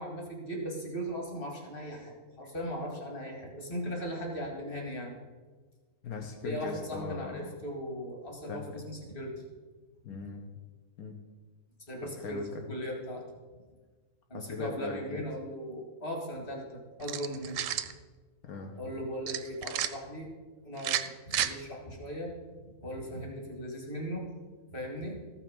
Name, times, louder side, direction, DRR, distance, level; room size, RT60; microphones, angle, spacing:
voice 1, 0.0-5.1 6.4-9.3 10.1-10.2 11.9-12.4 12.7-13.2 14.3-17.7 18.8-20.3 20.6-22.3 22.8-24.2 24.7-25.2, equal, 40° left, 0 dB, 2.2 m, -38 dB
voice 2, 6.0-7.5 8.5-8.8 10.0-10.5 11.0-11.2 12.0-12.7 14.3-15.2 18.4-18.8, left 4 dB, 80° left, 3 dB, 1.4 m, -40 dB
sound 1, 17.0-17.9 19.3-19.9 20.8-21.5, right 10 dB, 70° right, 0.9 m, -31 dB
14.0 x 5.9 x 5.3 m, 1.4 s
omnidirectional pair, 1.5 m